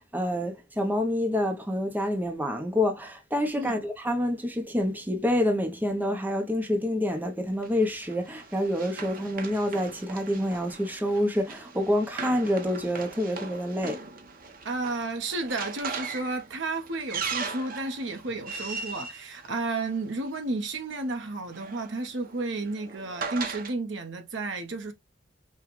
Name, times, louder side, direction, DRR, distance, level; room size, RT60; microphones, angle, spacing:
voice 1, 0.0-14.0, left 1 dB, 10° right, 0.7 m, -27 dB
Run, 7.6-20.3 21.3-23.7, right 5 dB, 50° right, 0.9 m, -39 dB
voice 2, 14.6-24.9, right 2 dB, 80° right, 1.0 m, -32 dB
5.7 x 2.3 x 3.1 m
head